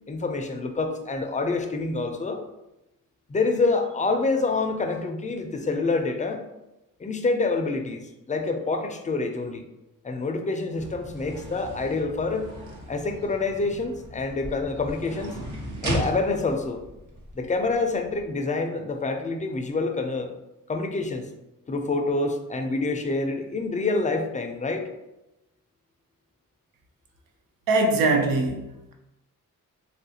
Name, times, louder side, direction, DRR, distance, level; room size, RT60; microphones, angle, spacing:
voice 1, 0.1-2.4 3.3-6.4 7.0-9.6 10.0-12.5 12.9-15.4 15.8-16.8 17.3-20.3 20.7-21.3 21.7-24.9, left 3 dB, 25° left, 5 dB, 0.4 m, -27 dB
sound 1, 10.8-18.2, equal, 60° right, 0.9 m, -36 dB
voice 2, 27.7-28.9, right 2 dB, 85° right, 3 dB, 0.5 m, -22 dB
3.2 x 2.4 x 2.7 m, 0.95 s
cardioid pair, 60°, 33 cm